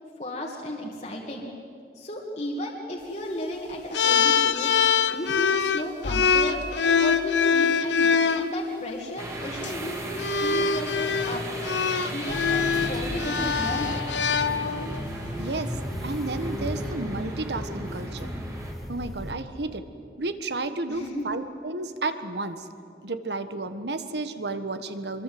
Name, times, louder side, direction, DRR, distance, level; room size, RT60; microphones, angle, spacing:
voice 1, 0.2-1.5 1.9-4.7 5.1-11.4 12.1-14.0 20.9-21.3, left 1 dB, 40° left, -2 dB, 2.1 m, -34 dB
sound 1, 3.9-8.5 9.5-9.7 10.2-15.0, left 6 dB, 85° left, 1.0 m, -24 dB
sound 2, 9.2-18.7, right 1 dB, 15° right, 2.4 m, -37 dB
sound 3, 12.3-19.3, equal, ahead, 1.8 m, -35 dB
voice 2, 15.4-15.7 16.0-18.3 18.9-19.8 20.2-22.7 23.0-25.2, right 2 dB, 70° right, 10 dB, 1.4 m, -32 dB
24.5 x 22.5 x 7.8 m, 2.5 s
head